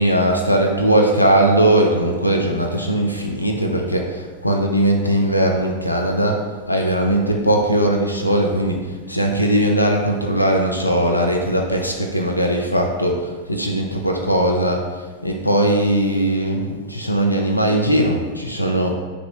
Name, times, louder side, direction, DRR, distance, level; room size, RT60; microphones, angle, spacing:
voice 1, 0.0-6.4 6.7-8.8 9.1-14.9 15.2-18.9, right 1 dB, 90° left, 2 dB, 0.4 m, -19 dB
3.5 x 3.2 x 3.7 m, 1.4 s
figure-of-eight pair, 90°, 0 cm